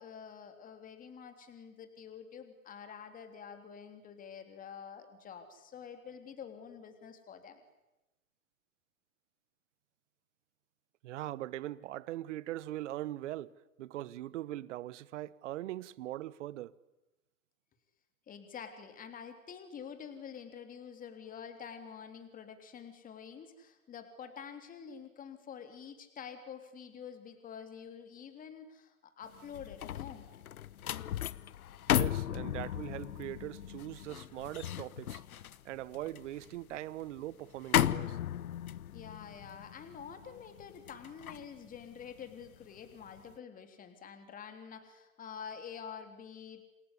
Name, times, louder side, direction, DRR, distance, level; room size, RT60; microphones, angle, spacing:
voice 1, 0.0-7.6 18.3-30.2 38.9-46.6, left 7 dB, 20° left, 3.4 m, -48 dB
voice 2, 11.0-16.7 31.9-38.2, right 14 dB, 55° right, 1.2 m, -41 dB
sound 1, 29.3-42.6 43.0-43.3, left 11 dB, 80° left, 1.1 m, -36 dB
28.0 x 21.5 x 9.8 m
hypercardioid pair, 135°, 42 cm